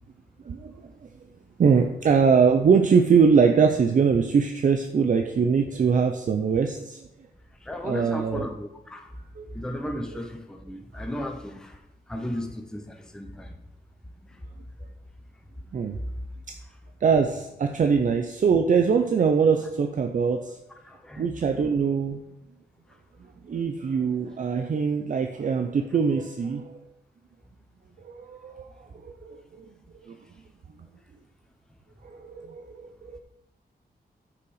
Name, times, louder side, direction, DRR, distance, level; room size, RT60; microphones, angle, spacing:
voice 1, 0.4-1.1 1.6-7.1 7.8-8.4 9.4-9.5 15.7-16.0 17.0-20.6 21.2-22.2 23.4-26.7 28.0-28.7 28.9-29.7 30.0-30.2 30.8-30.9 32.0-33.2, right 6 dB, 50° right, 5 dB, 0.6 m, -22 dB
voice 2, 7.5-9.2 9.5-13.6 14.2-14.4 15.6-15.7 16.0-16.3 16.6-16.7 20.8-21.3 21.6-21.7 22.9-23.0, left 1 dB, 5° left, 4 dB, 0.7 m, -36 dB
10.0 x 5.9 x 4.8 m, 0.92 s
wide cardioid pair, 170°, 17 cm